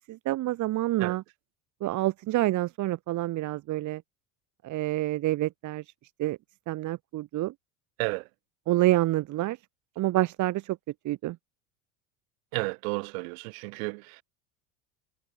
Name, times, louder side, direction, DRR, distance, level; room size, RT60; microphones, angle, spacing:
voice 1, 0.1-1.2 1.8-4.0 4.6-5.8 6.2-6.4 6.7-7.5 8.7-9.6 10.0-10.8 11.0-11.4, right 16 dB, 45° right, 1.0 m, -27 dB
voice 2, 12.5-14.2, right 33 dB, 75° right, 2.2 m, -32 dB
supercardioid pair, 105°, 41 cm